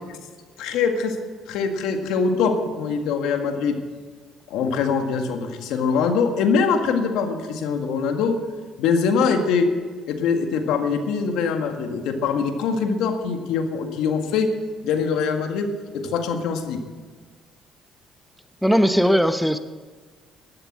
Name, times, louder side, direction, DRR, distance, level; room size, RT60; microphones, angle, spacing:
voice 1, 0.6-1.2 1.5-3.8 4.5-8.4 8.8-9.7 10.1-14.5 14.8-15.7 15.9-16.8, left 5 dB, 80° left, 5 dB, 1.9 m, -23 dB
voice 2, 18.6-19.6, equal, ahead, 10 dB, 0.8 m, -18 dB
12.5 x 12.0 x 7.4 m, 1.4 s
supercardioid pair, 80°, 0 cm